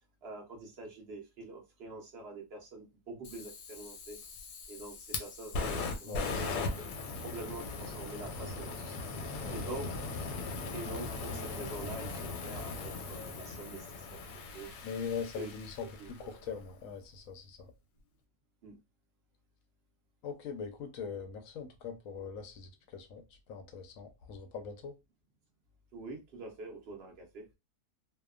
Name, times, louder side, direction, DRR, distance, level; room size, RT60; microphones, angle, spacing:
voice 1, 0.2-4.2 4.7-6.5 7.2-8.9 9.5-9.9 10.6-14.2 14.5-14.7 15.4-15.5 16.0-16.4 18.6-18.7 25.9-27.5, right 2 dB, 50° right, 0.9 m, -45 dB
Fire, 3.2-16.4, left 3 dB, 85° left, 1.2 m, -39 dB
voice 2, 6.0-6.7 9.4-9.7 14.8-17.7 20.2-25.0, left 6 dB, 70° left, 0.8 m, -42 dB
2.8 x 2.2 x 2.3 m
omnidirectional pair, 1.7 m